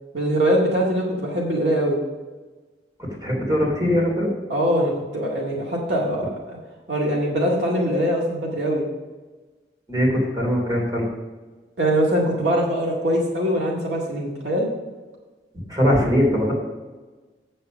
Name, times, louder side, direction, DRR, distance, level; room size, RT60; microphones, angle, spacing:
voice 1, 0.1-2.0 4.5-6.6 6.9-8.8 11.8-14.7, equal, 70° right, -3 dB, 2.1 m, -22 dB
voice 2, 3.0-4.3 9.9-11.1 15.7-16.5, equal, 20° right, -2 dB, 3.2 m, -21 dB
8.1 x 7.8 x 5.1 m, 1.3 s
head